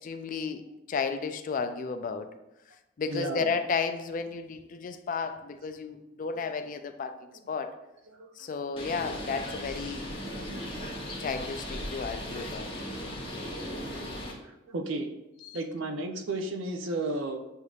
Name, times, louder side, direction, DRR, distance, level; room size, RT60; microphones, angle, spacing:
voice 1, 0.0-2.3 3.0-7.2 7.5-7.7 8.4-10.1 11.2-12.7 15.4-15.6, left 5 dB, 40° left, 9 dB, 0.3 m, -33 dB
voice 2, 3.1-3.5 8.1-8.3 13.4-14.0 14.4-15.1 15.5-17.4, right 2 dB, 70° right, 4 dB, 0.6 m, -34 dB
Bird, 8.8-14.3, equal, 25° left, 0.9 m, -37 dB
7.9 x 2.7 x 2.4 m, 0.98 s
head